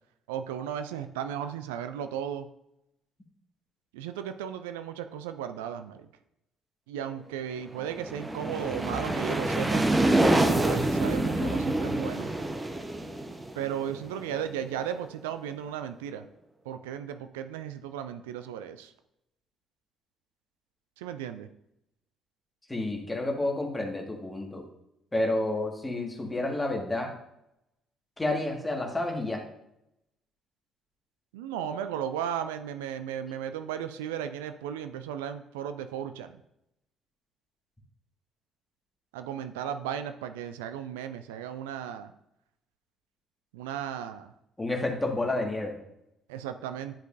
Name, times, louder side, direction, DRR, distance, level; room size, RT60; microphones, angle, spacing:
voice 1, 0.3-2.5 3.9-6.1 6.9-9.8 10.5-12.3 13.6-16.3 16.7-18.9 21.0-21.5 31.3-36.4 39.1-42.1 43.5-44.3 46.3-46.9, right 9 dB, 75° right, 9 dB, 0.3 m, -35 dB
sound 1, 7.8-14.5, right 2 dB, 15° right, 0.9 m, -27 dB
voice 2, 22.7-24.6 25.1-27.1 28.2-29.4 44.6-45.8, left 2 dB, 15° left, 1 dB, 1.7 m, -30 dB
10.0 x 5.1 x 2.6 m, 0.82 s
figure-of-eight pair, 45°, 0 cm